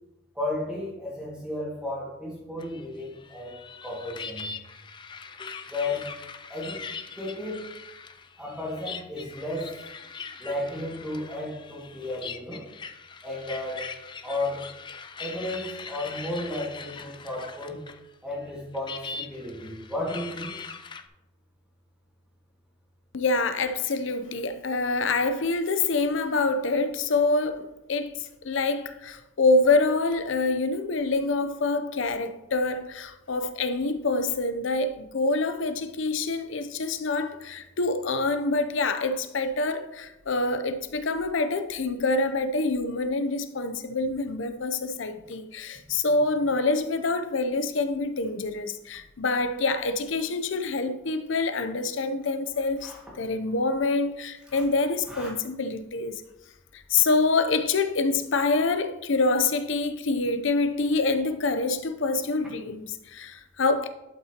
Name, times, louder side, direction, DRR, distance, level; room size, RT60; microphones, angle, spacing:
voice 1, 0.3-4.5 5.7-6.1 6.5-6.8 7.2-7.7 8.4-9.8 10.4-12.7 13.2-13.9 14.2-14.7 15.2-17.8 18.2-20.5 52.8-53.0 54.5-54.6 55.1-55.3, left 1 dB, 5° right, 2.0 m, -33 dB
sound 1, 2.6-18.1 18.3-21.0, left 5 dB, 25° left, 0.4 m, -41 dB
voice 2, 23.1-52.9 53.2-56.2 56.7-63.9, left 3 dB, 65° left, 0.6 m, -26 dB
11.5 x 5.8 x 2.9 m
head